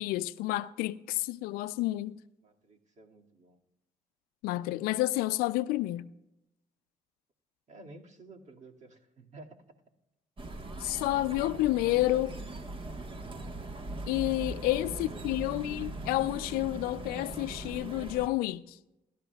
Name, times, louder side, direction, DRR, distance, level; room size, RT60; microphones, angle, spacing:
voice 1, 0.0-2.2 4.4-6.1 10.8-12.3 14.1-18.8, left 17 dB, 90° left, 0.4 m, -30 dB
voice 2, 2.4-3.6 7.7-9.6 11.9-12.0 14.6-14.7 15.0-15.4, right 2 dB, 55° right, 2.1 m, -52 dB
sound 1, 10.4-18.3, right 2 dB, 35° right, 1.3 m, -40 dB
21.5 x 12.5 x 2.3 m
supercardioid pair, 70°, 15 cm